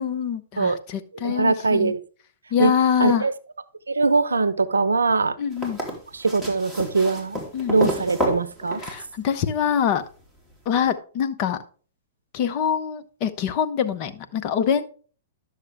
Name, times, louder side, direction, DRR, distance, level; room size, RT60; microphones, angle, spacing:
voice 1, 0.0-1.9 2.5-3.2 5.4-5.8 7.5-7.9 8.8-10.0 10.7-11.6 12.3-14.8, left 8 dB, 45° left, 0.9 m, -24 dB
voice 2, 1.2-2.0 2.6-3.3 3.9-5.4 6.1-7.4 7.7-8.8, right 3 dB, 85° right, 0.6 m, -22 dB
sound 1, 5.5-9.6 10.9-11.0, equal, 10° left, 2.8 m, -30 dB
11.0 x 6.6 x 3.5 m
hypercardioid pair, 115°, 0 cm